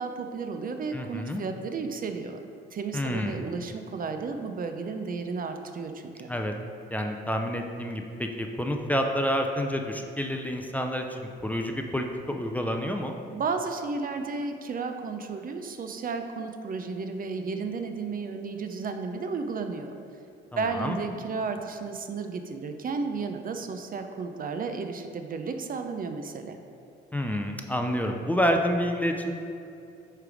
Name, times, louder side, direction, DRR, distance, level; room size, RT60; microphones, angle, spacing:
voice 1, 0.0-2.4 2.7-6.3 13.3-19.9 20.6-26.6, right 4 dB, 45° right, 6 dB, 0.5 m, -33 dB
voice 2, 0.9-1.4 2.9-3.5 6.3-6.5 6.9-13.2 20.7-21.0 27.1-29.3, equal, 10° left, 3 dB, 0.5 m, -28 dB
8.8 x 3.3 x 4.9 m, 2.6 s
cardioid pair, 90°, 20 cm